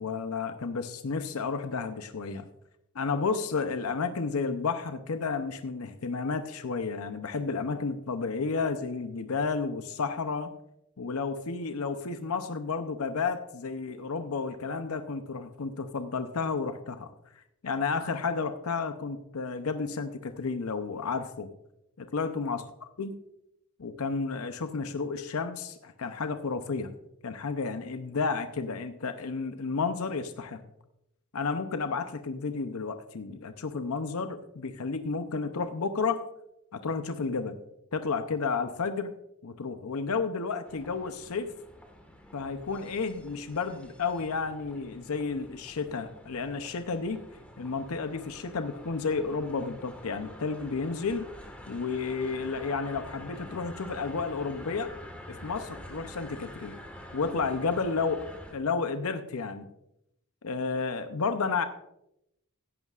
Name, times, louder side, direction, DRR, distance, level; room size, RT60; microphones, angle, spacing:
voice 1, 0.0-2.5 2.9-10.5 11.0-17.1 17.6-21.5 22.0-22.6 23.0-23.1 23.8-26.9 27.2-30.6 31.3-36.2 36.7-37.6 37.9-39.1 39.4-41.5 42.3-47.2 47.6-51.3 51.7-54.9 55.3-56.8 57.1-58.3 58.5-59.7 60.4-61.6, left 4 dB, 75° left, 9 dB, 0.6 m, -32 dB
sound 1, 40.6-58.5, left 1 dB, 5° left, 1.5 m, -47 dB
15.5 x 11.0 x 2.4 m, 0.84 s
head